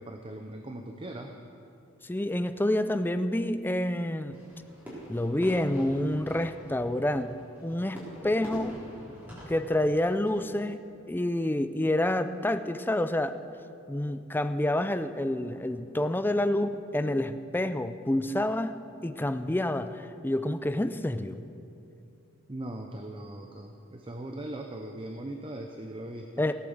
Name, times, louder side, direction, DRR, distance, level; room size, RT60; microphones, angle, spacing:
voice 1, 0.0-1.3 22.5-26.3, right 1 dB, 25° right, 4 dB, 0.7 m, -39 dB
voice 2, 2.0-4.4 5.1-7.3 7.6-8.8 9.5-10.8 11.1-13.4 13.9-21.4 26.4-26.5, left 1 dB, 10° left, 10 dB, 0.4 m, -28 dB
Fireworks, 4.3-10.4, equal, 10° right, 4.0 m, -45 dB
17.5 x 8.4 x 7.2 m, 2.7 s
head